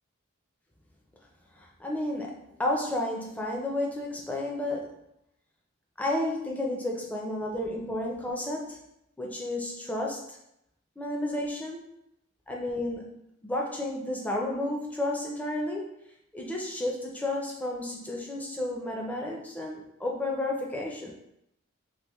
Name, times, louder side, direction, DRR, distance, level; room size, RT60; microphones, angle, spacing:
voice 1, 1.6-4.9 6.0-8.8 9.2-10.4 11.0-11.8 12.5-13.1 13.4-15.9 16.3-21.1, left 1 dB, 5° left, -1 dB, 0.4 m, -32 dB
3.4 x 2.5 x 3.0 m, 0.80 s
head